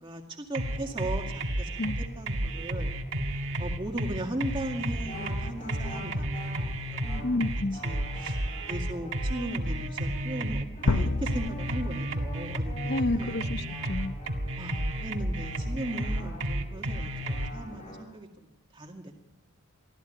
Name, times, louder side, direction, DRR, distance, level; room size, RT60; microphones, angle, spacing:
voice 1, 0.0-1.8 2.2-2.9 3.6-7.3 7.8-13.4 14.6-19.1, right 1 dB, 20° right, 1 dB, 2.1 m, -38 dB
sound 1, 0.5-17.5, right 1 dB, 55° right, 1.9 m, -32 dB
sound 2, 0.7-18.0, left 1 dB, 30° left, 5.8 m, -47 dB
voice 2, 7.2-7.8 12.9-14.2, left 2 dB, 45° left, 13 dB, 0.7 m, -30 dB
sound 3, 10.9-12.8, left 3 dB, 90° left, 0.8 m, -30 dB
24.0 x 15.5 x 9.2 m, 0.92 s
head